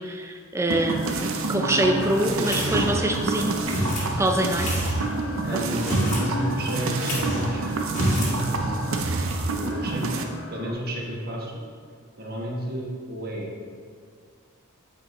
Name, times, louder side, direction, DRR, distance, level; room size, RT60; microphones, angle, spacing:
voice 1, 0.0-3.6 4.2-4.9 5.5-5.6, right 1 dB, 15° right, 4 dB, 0.4 m, -25 dB
sound 1, 0.7-10.7, left 1 dB, 60° left, 0.8 m, -39 dB
sound 2, 0.7-10.2, right 3 dB, 70° right, 0.6 m, -28 dB
sound 3, 2.4-3.1 3.7-4.1 4.6-5.0 5.7-6.3 6.5-6.6 7.0-7.5 7.9-8.4, equal, 35° left, 1.8 m, -26 dB
voice 2, 5.4-7.6 8.1-8.9 9.2-10.1 10.5-11.6 12.2-13.5, right 1 dB, 45° right, -2 dB, 1.2 m, -32 dB
8.8 x 5.2 x 3.0 m, 2.1 s
head